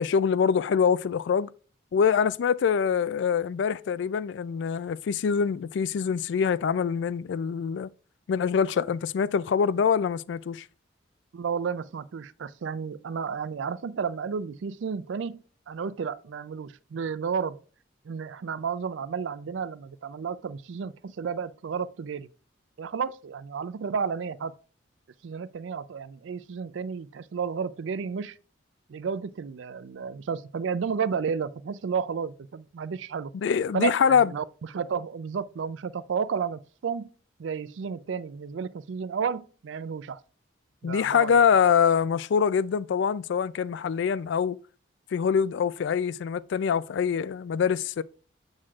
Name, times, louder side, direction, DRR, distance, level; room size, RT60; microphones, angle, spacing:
voice 1, 0.0-1.5 1.9-7.9 8.3-10.6 33.3-34.3 40.8-44.6 45.1-48.0, left 7 dB, 65° left, 0.3 m, -24 dB
voice 2, 11.3-17.6 18.0-22.3 22.8-24.5 25.2-28.4 28.9-33.3 33.7-34.4 34.7-37.1 37.4-40.2 40.8-41.4, right 6 dB, 75° right, 0.4 m, -32 dB
7.5 x 6.4 x 2.4 m
head